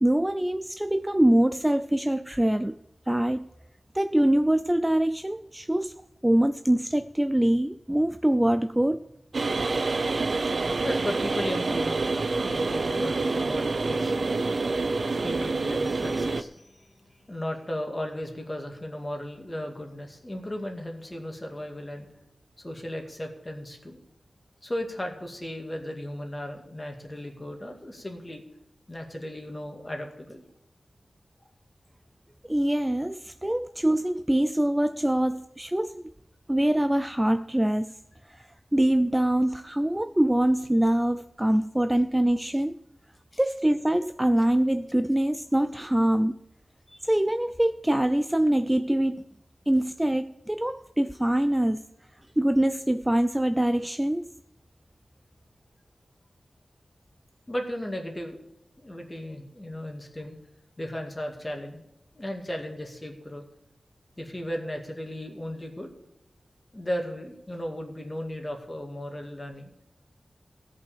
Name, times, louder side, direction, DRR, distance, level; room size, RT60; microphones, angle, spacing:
voice 1, 0.0-2.8 3.1-3.5 3.9-9.1 32.5-36.1 36.5-37.9 38.3-42.8 43.4-46.3 47.0-49.3 49.7-51.8 52.4-54.2, right 1 dB, 10° right, 0.4 m, -24 dB
sound 1, 9.3-16.4, right 3 dB, 55° right, 0.6 m, -27 dB
voice 2, 10.5-12.1 12.4-14.3 15.0-22.2 22.6-24.0 24.6-28.4 28.9-30.4 43.3-43.4 46.9-47.0 57.5-58.4 58.8-60.4 60.8-61.8 62.2-63.4 64.2-65.9 66.7-69.7, left 1 dB, 20° left, 2.1 m, -36 dB
16.5 x 5.6 x 7.1 m
wide cardioid pair, 110°, 0 cm